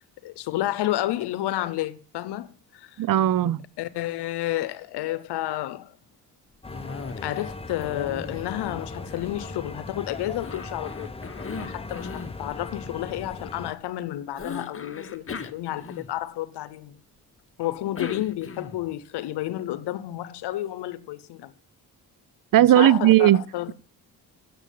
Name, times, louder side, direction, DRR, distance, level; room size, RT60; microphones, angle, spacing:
voice 1, 0.2-3.0 3.4-5.9 7.2-17.0 17.6-21.5 22.6-23.7, left 14 dB, 85° left, 0.9 m, -31 dB
voice 2, 3.0-3.6 22.5-23.4, right 13 dB, 55° right, 0.6 m, -17 dB
sound 1, 6.6-13.7, left 2 dB, 15° left, 1.0 m, -39 dB
Cough, 6.7-7.6 7.8-9.9 10.4-12.4 14.4-16.4 17.6-18.9, left 5 dB, 35° left, 1.2 m, -38 dB
9.1 x 7.0 x 8.3 m
cardioid pair, 65°, 40 cm